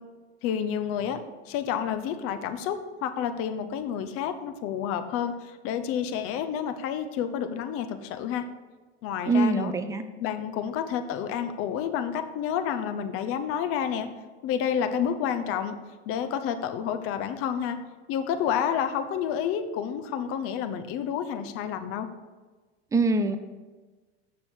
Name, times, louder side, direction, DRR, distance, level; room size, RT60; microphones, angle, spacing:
voice 1, 0.4-1.2 1.5-8.4 9.0-9.7 10.2-14.1 14.4-15.8 16.1-17.8 18.1-22.1, left 8 dB, 45° left, 9 dB, 0.8 m, -29 dB
voice 2, 9.3-10.0 22.9-23.4, right 3 dB, 10° right, 9 dB, 0.4 m, -23 dB
7.4 x 6.4 x 4.4 m, 1.3 s
supercardioid pair, 130°, 31 cm